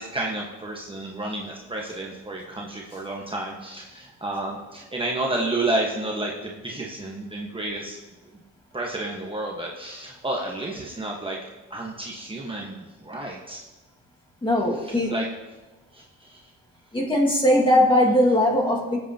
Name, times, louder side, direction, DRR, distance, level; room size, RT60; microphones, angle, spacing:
voice 1, 0.0-8.0 8.7-11.4 11.7-13.6 14.8-15.3 15.9-16.4, right 2 dB, 15° right, -2 dB, 1.4 m, -31 dB
voice 2, 14.4-15.1 16.9-19.0, left 1 dB, 15° left, -1 dB, 2.0 m, -20 dB
16.5 x 8.1 x 2.9 m, 1.2 s
cardioid pair, 90°, 30 cm